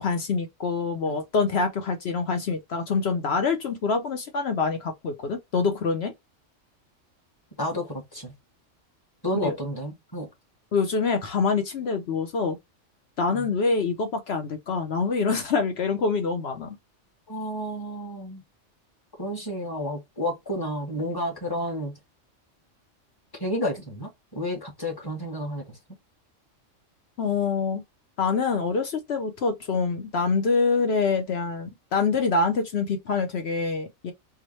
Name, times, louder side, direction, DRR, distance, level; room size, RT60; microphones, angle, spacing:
voice 1, 0.0-6.1 9.4-9.6 10.7-12.6 13.2-16.8 27.2-27.8 28.2-34.1, left 4 dB, 60° left, 0.9 m, -25 dB
voice 2, 7.6-8.3 9.2-10.3 13.3-13.5 17.3-18.4 19.2-21.9 23.4-25.8, equal, 20° left, 1.3 m, -31 dB
4.7 x 2.1 x 3.0 m
omnidirectional pair, 1.3 m